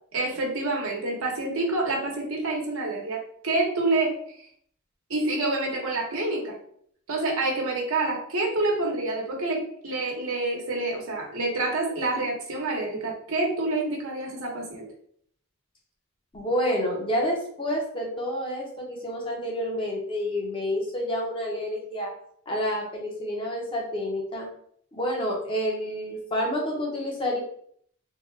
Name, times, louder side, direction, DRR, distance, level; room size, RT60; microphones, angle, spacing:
voice 1, 0.1-3.2 3.4-4.1 5.1-6.5 7.1-14.9, right 2 dB, 75° right, -1 dB, 1.0 m, -27 dB
voice 2, 16.3-22.1 22.5-24.5 24.9-27.4, equal, 25° left, -1 dB, 0.8 m, -29 dB
3.7 x 2.2 x 3.2 m, 0.64 s
head